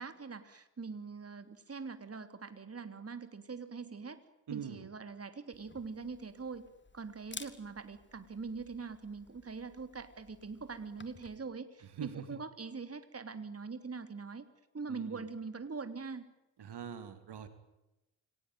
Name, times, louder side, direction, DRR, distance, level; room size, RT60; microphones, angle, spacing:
voice 1, 0.0-4.2 4.5-6.6 6.9-14.5 14.7-16.2, right 4 dB, 30° right, 10 dB, 3.2 m, -43 dB
voice 2, 4.5-4.9 11.8-12.4 14.9-15.3 16.6-17.5, right 8 dB, 55° right, 11 dB, 3.0 m, -43 dB
Camera, 5.5-11.4, left 3 dB, 20° left, 3.6 m, -54 dB
29.0 x 19.0 x 9.4 m, 0.97 s
hypercardioid pair, 45°, 49 cm